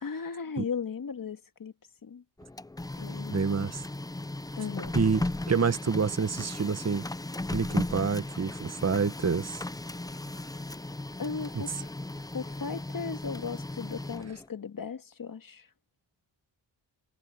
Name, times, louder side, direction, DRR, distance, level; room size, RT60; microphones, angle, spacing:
voice 1, 0.0-1.7 2.0-2.2 3.0-3.4 4.6-5.0 11.2-11.9 12.3-15.7, left 6 dB, 50° left, 2.0 m, -36 dB
Printer, 2.4-14.5, left 2 dB, 10° left, 0.6 m, -36 dB
voice 2, 3.3-3.8 4.9-7.1 7.5-9.6 11.5-11.6, right 5 dB, 35° right, 1.6 m, -28 dB
cardioid pair, 55°, 44 cm